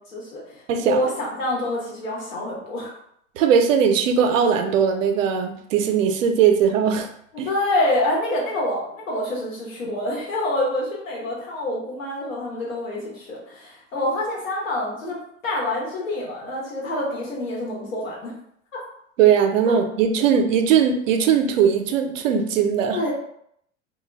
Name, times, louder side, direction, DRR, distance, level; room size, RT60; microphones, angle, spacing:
voice 1, 0.1-2.9 7.3-15.2 15.4-18.3 18.7-18.8 19.7-19.8 22.9-23.1, left 1 dB, 85° left, -4 dB, 1.2 m, -27 dB
voice 2, 0.7-1.0 3.4-7.1 7.4-7.5 19.2-23.0, right 7 dB, 80° right, 6 dB, 0.5 m, -19 dB
2.2 x 2.2 x 3.2 m, 0.70 s
hypercardioid pair, 95°, 38 cm